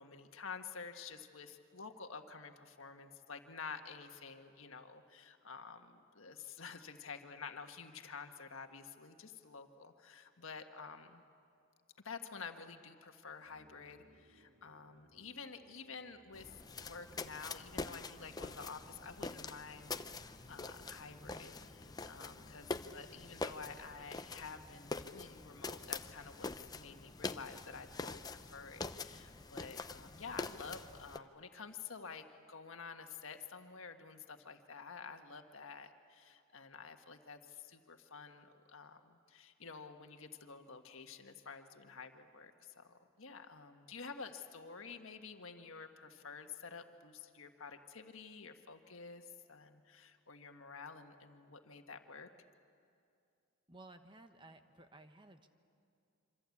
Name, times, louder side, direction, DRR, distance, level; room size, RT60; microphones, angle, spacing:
voice 1, 0.0-11.2 12.0-20.0 20.5-52.3, left 5 dB, 75° left, 6 dB, 1.5 m, -50 dB
sound 1, 13.4-24.2, right 1 dB, 65° right, 1.6 m, -67 dB
sound 2, 16.3-31.2, left 3 dB, 20° left, 0.6 m, -45 dB
voice 2, 53.7-55.5, right 2 dB, 25° right, 7 dB, 1.1 m, -57 dB
26.5 x 25.0 x 8.5 m, 2.5 s
head